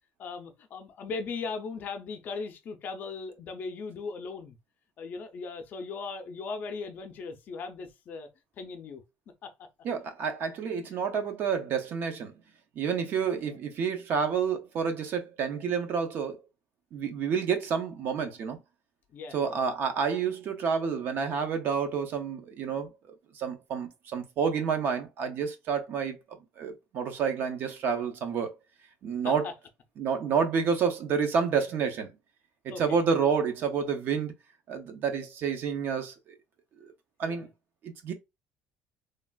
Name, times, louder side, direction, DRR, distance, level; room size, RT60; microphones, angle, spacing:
voice 1, 0.2-4.6 5.0-8.3 8.6-9.0 9.4-9.5 19.1-19.6 29.2-29.5 32.7-32.9 37.3-37.5, left 4 dB, 45° left, 0.5 m, -38 dB
voice 2, 9.8-12.3 12.8-16.4 16.9-18.6 19.3-22.9 23.3-26.2 26.6-28.5 29.0-29.5 30.0-32.1 32.8-34.3 34.7-36.3 36.8-36.9 37.2-37.5 37.8-38.1, right 6 dB, 50° right, 0.6 m, -29 dB
3.3 x 2.4 x 2.2 m
cardioid pair, 165°, 4 cm